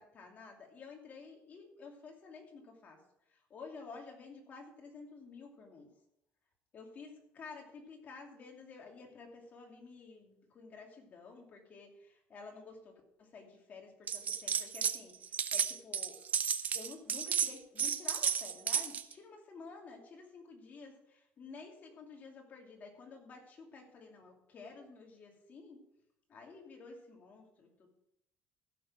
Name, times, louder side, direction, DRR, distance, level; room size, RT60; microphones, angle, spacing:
voice 1, 0.0-3.0 3.3-5.9 6.7-16.2 16.7-25.8 26.3-27.9, left 4 dB, 35° left, 1 dB, 2.6 m, -51 dB
sound 1, 14.1-15.0 15.2-19.1, right 7 dB, 35° right, 0.6 m, -33 dB
15.5 x 6.7 x 4.9 m, 0.78 s
cardioid pair, 145°, 5 cm